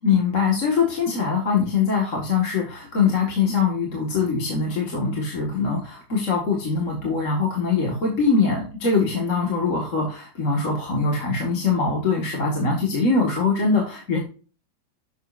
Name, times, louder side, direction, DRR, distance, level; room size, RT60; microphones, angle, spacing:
voice 1, 0.0-14.2, left 4 dB, 45° left, 0 dB, 2.2 m, -22 dB
10.5 x 7.9 x 2.5 m, 0.37 s
omnidirectional pair, 2.0 m